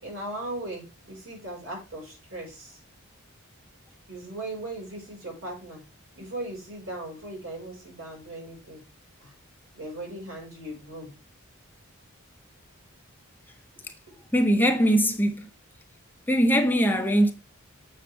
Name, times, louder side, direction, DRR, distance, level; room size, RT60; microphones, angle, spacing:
voice 1, 0.0-2.8 4.1-5.8 6.2-8.8 9.2-9.3 9.8-11.1 14.1-14.2, right 1 dB, 70° right, 5.2 m, -38 dB
voice 2, 14.3-15.5 16.3-17.3, equal, 10° left, 0.8 m, -21 dB
7.6 x 6.5 x 3.4 m
head